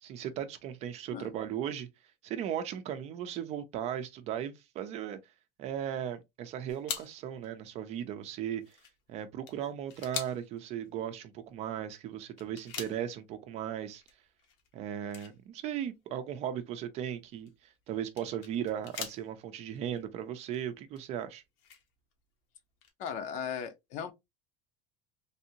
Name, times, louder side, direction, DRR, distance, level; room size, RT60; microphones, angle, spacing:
voice 1, 0.0-1.9 2.2-5.2 5.6-8.8 9.1-14.0 14.7-17.5 17.9-21.4, right 10 dB, 45° right, 0.5 m, -37 dB
sound 1, 6.7-11.5 11.8-11.9 12.4-13.5 13.8-16.3 16.7-20.7 20.9-22.1 22.4-22.5 22.7-22.9, left 7 dB, 80° left, 1.1 m, -44 dB
voice 2, 23.0-24.1, left 7 dB, 50° left, 0.7 m, -37 dB
3.4 x 2.7 x 2.7 m
cardioid pair, 155°, 16 cm